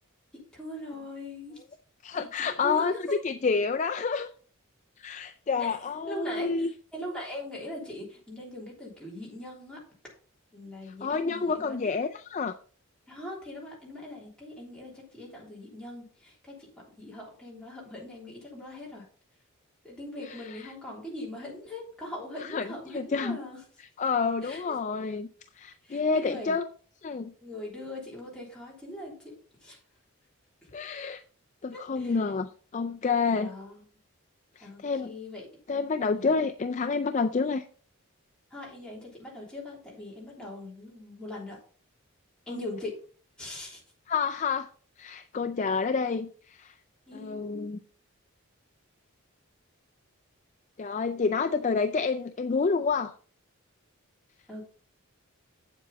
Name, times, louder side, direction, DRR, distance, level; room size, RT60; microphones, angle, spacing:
voice 1, 0.3-1.6 2.1-3.0 5.6-5.7 6.1-6.7 6.9-9.8 10.5-11.8 13.1-16.7 17.0-19.0 19.8-23.6 24.4-24.6 25.8-26.6 27.4-29.3 29.6-29.8 31.7-32.2 33.3-33.8 34.6-35.5 36.1-36.3 38.5-41.6 42.5-43.0 43.4-43.8 47.1-47.7 54.5-54.7, left 1 dB, 5° left, -5 dB, 3.2 m, -41 dB
voice 2, 2.0-4.3 5.0-6.7 10.9-12.5 20.2-20.7 22.4-23.4 24.0-25.3 25.6-26.7 27.0-27.3 30.7-31.2 31.6-33.5 34.6-35.1 35.7-37.6 42.5-42.6 44.1-44.7 45.0-46.7 47.1-47.8 50.8-53.1, left 4 dB, 35° left, 7 dB, 0.3 m, -29 dB
8.1 x 7.5 x 4.1 m, 0.43 s
head